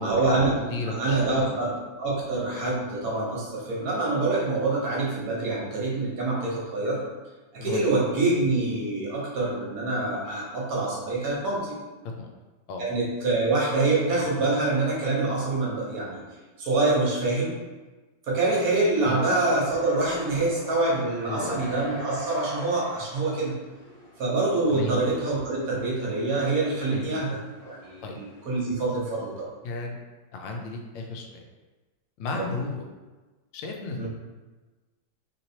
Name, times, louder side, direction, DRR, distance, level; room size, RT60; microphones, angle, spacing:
voice 1, 0.0-0.5 0.9-7.0 7.5-11.8 12.8-16.2 16.6-17.6 18.2-23.6 24.2-27.4 27.7-29.5 32.3-32.4 33.9-34.1, right 2 dB, 55° right, -5 dB, 1.3 m, -26 dB
voice 2, 0.6-1.4 7.6-7.9 12.2-12.3 12.7-12.8 19.1-19.2 21.3-21.6 24.7-25.0 26.9-27.1 28.0-28.2 29.6-30.0 30.3-31.4 32.2-32.8 33.5-34.1, left 3 dB, 90° left, 1 dB, 1.3 m, -34 dB
sound 1, 18.8-28.6, equal, 70° left, 1.4 m, -43 dB
3.4 x 2.9 x 2.7 m, 1.2 s
omnidirectional pair, 2.0 m